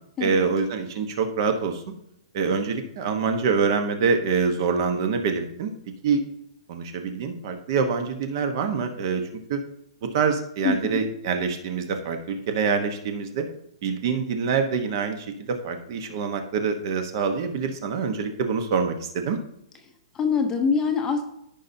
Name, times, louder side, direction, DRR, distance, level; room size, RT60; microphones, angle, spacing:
voice 1, 0.2-1.8 2.3-5.7 6.0-6.2 6.7-9.6 10.0-13.5 13.8-19.4, right 5 dB, 40° right, 6 dB, 1.1 m, -25 dB
voice 2, 10.6-11.0 20.1-21.2, left 5 dB, 15° left, 4 dB, 0.8 m, -24 dB
14.5 x 5.3 x 2.7 m, 0.77 s
hypercardioid pair, 165°, 3 cm